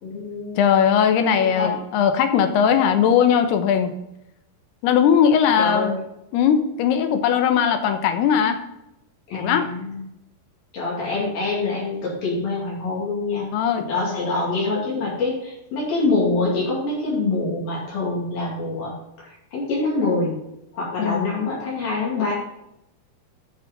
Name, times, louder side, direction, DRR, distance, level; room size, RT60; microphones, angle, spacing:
voice 1, 0.0-0.6 1.3-1.7 5.6-6.0 9.3-10.0 10.7-20.4 20.7-22.3, left 3 dB, 65° left, -6 dB, 4.3 m, -25 dB
voice 2, 0.6-3.9 4.8-5.9 6.3-8.6 9.3-9.7 13.5-13.8 21.0-21.3, left 8 dB, 85° left, 7 dB, 3.0 m, -19 dB
11.0 x 6.3 x 4.0 m, 0.86 s
omnidirectional pair, 4.6 m